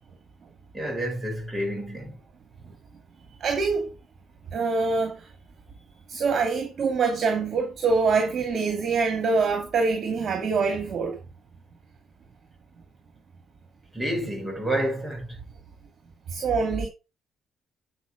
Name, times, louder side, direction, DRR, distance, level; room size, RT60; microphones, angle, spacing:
voice 1, 0.7-2.2 13.9-15.3, right 1 dB, 10° right, 6.0 m, -29 dB
voice 2, 3.4-3.9 4.5-5.3 6.1-11.2 16.3-16.9, right 4 dB, 55° right, 2.4 m, -25 dB
9.2 x 5.5 x 5.0 m
cardioid pair, 90°, 0 cm